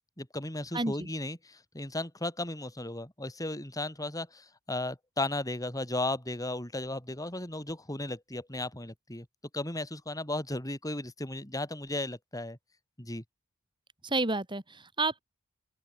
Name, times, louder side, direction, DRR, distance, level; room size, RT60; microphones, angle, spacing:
voice 1, 0.2-9.3 9.5-12.6 13.0-13.2, left 2 dB, 15° left, 5.3 m, -35 dB
voice 2, 0.7-1.1 14.0-15.2, right 2 dB, 25° right, 4.4 m, -30 dB
open air
head